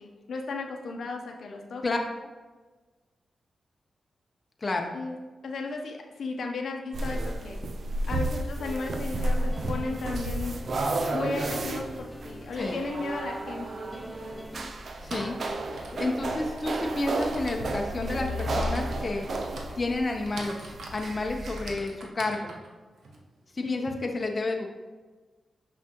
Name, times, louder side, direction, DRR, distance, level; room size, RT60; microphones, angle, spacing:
voice 1, 0.0-1.8 4.9-5.2 5.4-7.6 8.1-10.6 11.1-13.8 23.6-23.8, left 3 dB, 70° left, 1 dB, 0.7 m, -35 dB
voice 2, 4.6-4.9 12.6-12.8 15.0-15.4 15.7-19.3 19.8-22.5 23.5-24.8, left 2 dB, 35° left, 2 dB, 0.7 m, -30 dB
sound 1, 6.9-21.7, right 1 dB, 60° right, 0.6 m, -32 dB
Echoes of the Mind, 9.5-14.7, left 1 dB, 10° left, 0.4 m, -44 dB
Typing, 13.7-13.8 14.8-23.9, right 2 dB, 80° right, 1.0 m, -45 dB
6.1 x 5.9 x 2.9 m, 1.3 s
cardioid pair, 80°, 0 cm